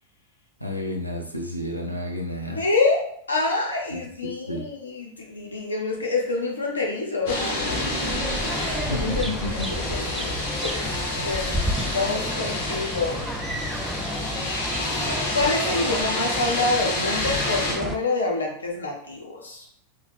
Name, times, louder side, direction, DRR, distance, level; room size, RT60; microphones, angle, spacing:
voice 1, 0.6-2.7 3.9-4.7 8.6-9.7, left 1 dB, 90° right, 1 dB, 0.5 m, -31 dB
voice 2, 2.6-3.0 3.3-7.8 8.5-10.3 10.6-11.6 11.9-13.2 15.3-19.7, left 3 dB, 75° left, 0 dB, 0.8 m, -27 dB
sound 1, 7.3-17.7, left 2 dB, 50° left, 0.9 m, -29 dB
sound 2, 7.7-18.0, right 1 dB, 5° right, 0.3 m, -31 dB
3.2 x 2.2 x 3.4 m, 0.65 s
figure-of-eight pair, 90°, 0 cm